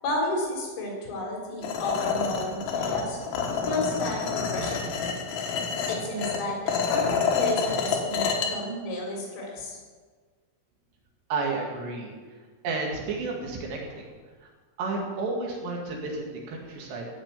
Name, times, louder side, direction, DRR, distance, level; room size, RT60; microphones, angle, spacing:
voice 1, 0.0-3.2 3.6-4.8 5.9-9.8, left 1 dB, 90° left, -1 dB, 6.0 m, -32 dB
sound 1, 1.6-8.5, left 5 dB, 70° left, 3.7 m, -28 dB
voice 2, 11.3-12.1 12.6-14.1 14.4-14.5 14.8-17.1, right 3 dB, 65° right, -1 dB, 4.1 m, -31 dB
16.0 x 6.4 x 8.3 m, 1.5 s
omnidirectional pair, 5.6 m